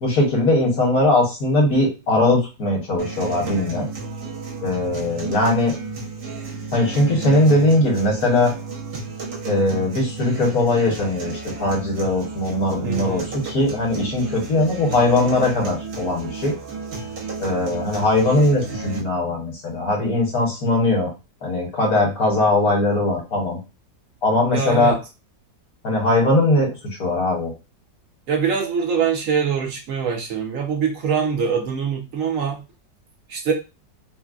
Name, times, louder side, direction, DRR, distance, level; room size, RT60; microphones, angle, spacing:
voice 1, 0.0-3.9 4.6-5.7 6.7-8.5 9.4-16.5 17.4-21.1 21.4-23.6 24.2-25.0 25.8-26.7 27.0-27.5, left 2 dB, 60° left, -2 dB, 1.4 m, -20 dB
sound 1, 3.0-19.0, right 4 dB, 90° right, 1.6 m, -33 dB
voice 2, 12.8-13.3 24.5-25.0 28.3-32.6 33.3-33.5, right 6 dB, 60° right, 1 dB, 0.9 m, -23 dB
3.8 x 2.1 x 2.4 m, 0.28 s
omnidirectional pair, 1.9 m